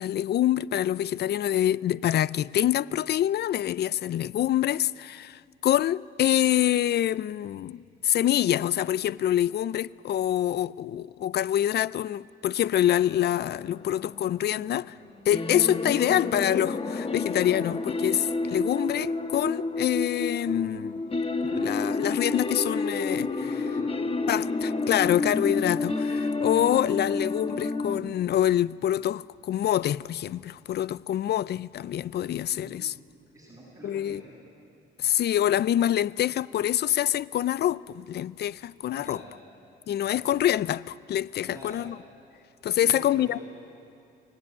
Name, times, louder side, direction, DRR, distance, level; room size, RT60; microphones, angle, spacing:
voice 1, 0.0-14.9 15.3-21.0 21.4-23.3 24.3-32.9 33.8-34.2 35.0-39.2 39.9-42.0 42.6-43.4, left 11 dB, 55° left, 0.5 m, -26 dB
sound 1, 13.1-28.0, left 3 dB, 30° left, 1.4 m, -30 dB
voice 2, 23.4-24.2 32.5-33.1 33.3-34.3 38.9-39.3 40.0-40.4 41.4-41.8 42.7-43.4, right 1 dB, 15° right, 7.9 m, -46 dB
24.0 x 17.5 x 9.6 m
cardioid pair, 90°, 20 cm